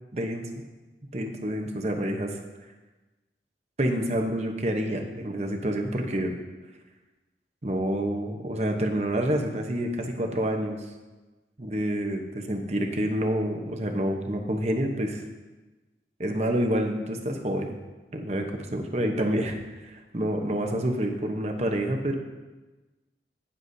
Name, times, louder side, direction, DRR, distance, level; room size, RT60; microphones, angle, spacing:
voice 1, 0.1-0.6 1.1-2.4 3.8-6.3 7.6-10.8 11.6-15.2 16.2-17.7 18.1-22.2, right 1 dB, 40° right, 3 dB, 1.0 m, -28 dB
17.5 x 7.0 x 2.8 m, 1.2 s
head